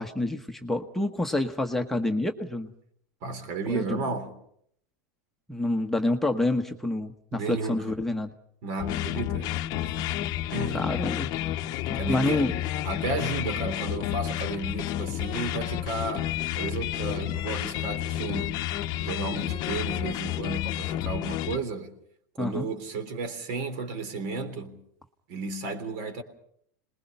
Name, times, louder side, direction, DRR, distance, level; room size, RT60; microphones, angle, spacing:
voice 1, 0.0-2.7 3.7-4.0 5.5-8.3 10.7-11.3 11.9-12.6 22.4-22.7, left 2 dB, 5° left, 1.1 m, -28 dB
voice 2, 3.2-4.3 7.3-7.9 8.6-10.2 10.5-10.9 11.9-12.5 12.8-18.6 19.0-21.9 22.4-24.8 25.3-26.2, right 3 dB, 55° right, 3.4 m, -33 dB
sound 1, 8.8-21.6, left 13 dB, 45° left, 0.9 m, -30 dB
27.0 x 20.5 x 5.5 m
supercardioid pair, 130°, 10 cm